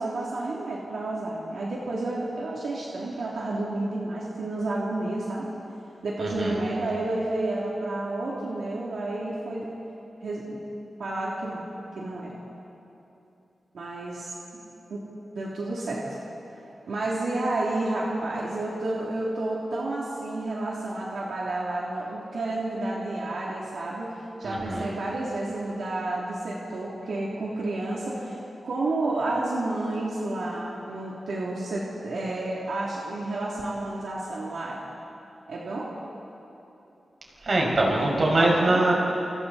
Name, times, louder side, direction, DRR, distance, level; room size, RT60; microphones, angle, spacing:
voice 1, 0.0-5.5 6.0-9.7 10.2-10.6 11.0-11.7 11.9-12.4 13.7-14.3 14.9-15.0 15.3-16.2 16.6-34.8 35.5-35.9 37.9-38.8, right 2 dB, 85° right, -5 dB, 3.0 m, -30 dB
voice 2, 6.2-6.6 24.4-24.9 37.4-38.9, right 2 dB, 50° right, -2 dB, 6.1 m, -23 dB
28.5 x 27.5 x 4.2 m, 3.0 s
wide cardioid pair, 90°, 0 cm